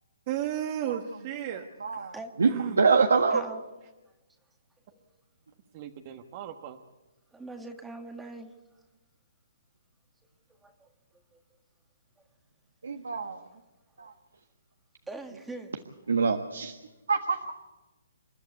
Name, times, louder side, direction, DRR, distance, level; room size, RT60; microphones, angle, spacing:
voice 1, 0.3-1.7 1.9-2.1 2.4-2.8 5.7-6.8, right 11 dB, 35° right, 1.3 m, -34 dB
voice 2, 1.5-2.1 2.4-2.5 2.8-3.4 12.8-13.4 14.0-14.1 16.1-16.7 17.1-17.5, right 5 dB, 90° right, 1.5 m, -25 dB
voice 3, 3.3-3.6 4.9-5.0 7.3-8.5 10.6-10.9 11.3-11.4 15.1-15.7, right 2 dB, 5° right, 1.7 m, -42 dB
28.5 x 12.0 x 8.3 m
hypercardioid pair, 150°, 0 cm